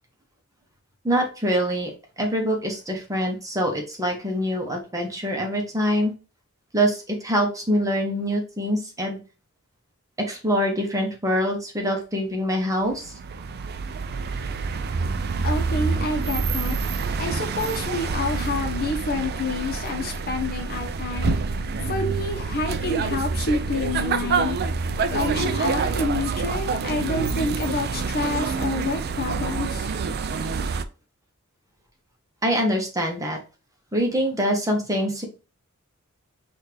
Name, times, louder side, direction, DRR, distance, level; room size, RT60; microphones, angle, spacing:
voice 1, 1.0-1.9 2.2-6.1 6.7-9.2 10.2-13.1 32.4-33.4 33.9-35.3, equal, 15° right, 2 dB, 0.8 m, -24 dB
sound 1, 12.9-30.8, right 4 dB, 45° right, 0.4 m, -27 dB
voice 2, 15.4-16.8 17.2-21.4 21.8-24.6 25.1-29.9, left 2 dB, 45° left, 3 dB, 1.0 m, -28 dB
6.3 x 2.5 x 3.3 m, 0.33 s
head